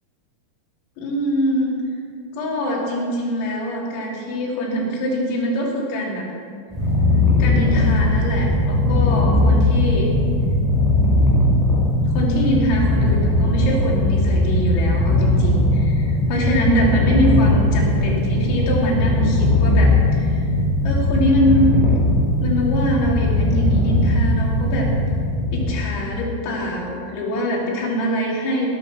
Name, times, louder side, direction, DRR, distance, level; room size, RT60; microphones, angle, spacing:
voice 1, 1.0-1.8 2.3-6.3 7.4-10.1 12.1-20.5 20.8-21.7 22.4-24.9 25.5-28.7, equal, 80° left, -3 dB, 5.6 m, -23 dB
Purr, 6.7-26.0, left 1 dB, ahead, 4.2 m, -18 dB
20.0 x 11.0 x 6.2 m, 2.2 s
omnidirectional pair, 5.9 m